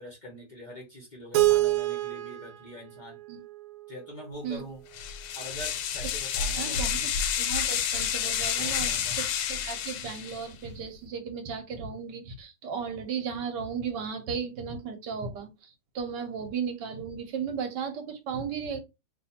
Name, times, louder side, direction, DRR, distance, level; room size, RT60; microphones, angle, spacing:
voice 1, 0.0-3.2 3.9-4.8 5.4-7.1 8.6-9.2, equal, 60° left, 0.4 m, -44 dB
Keyboard (musical), 1.3-4.3, right 17 dB, 85° right, 1.5 m, -27 dB
sound 1, 4.9-10.5, left 8 dB, 90° left, 1.4 m, -30 dB
voice 2, 6.5-7.1 7.4-18.8, right 6 dB, 65° right, 1.3 m, -35 dB
3.0 x 2.5 x 4.2 m
omnidirectional pair, 2.2 m